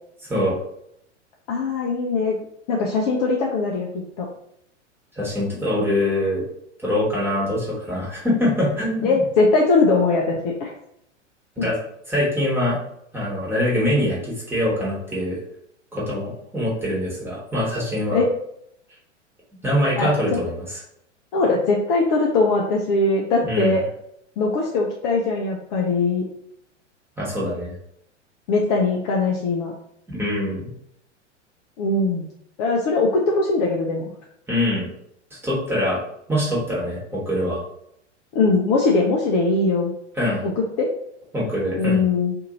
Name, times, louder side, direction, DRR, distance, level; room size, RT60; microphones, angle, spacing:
voice 1, 1.5-2.4 2.7-4.3 9.0-10.7 11.6-11.7 18.1-18.3 20.0-20.4 21.3-23.8 24.4-26.3 28.5-29.7 31.8-32.2 32.6-34.1 38.3-39.9 40.4-40.9 41.8-42.4, left 3 dB, 35° left, -1 dB, 0.5 m, -21 dB
voice 2, 5.1-6.4 6.8-9.2 11.6-11.8 12.1-12.8 13.1-15.4 15.9-18.2 19.6-20.8 23.5-23.8 27.2-27.7 30.1-30.7 34.5-34.9 35.4-36.0 36.3-37.6 40.2-40.4 41.3-42.0, left 1 dB, 5° right, -6 dB, 1.2 m, -23 dB
2.6 x 2.5 x 2.9 m, 0.76 s
figure-of-eight pair, 100°, 37 cm